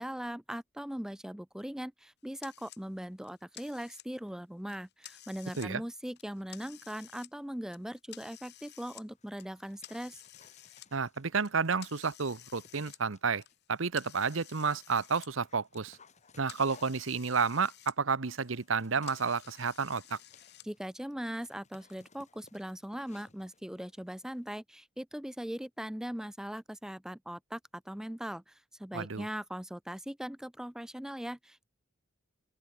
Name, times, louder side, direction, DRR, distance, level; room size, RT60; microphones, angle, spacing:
voice 1, 0.0-10.2 20.6-31.7, equal, 5° right, 0.4 m, -40 dB
sound 1, 2.4-2.8 3.2-4.3 4.7-5.7 6.1-7.3 7.7-9.1 9.4-10.9 11.4-15.3 15.6-18.0 18.2-20.7, left 13 dB, 55° left, 2.4 m, -53 dB
Dog, 9.1-12.0 12.5-13.6 14.2-24.6, left 4 dB, 35° left, 7.1 m, -63 dB
voice 2, 10.9-13.4 13.7-16.0 16.4-20.2 28.9-29.3, right 5 dB, 70° right, 1.0 m, -31 dB
open air
head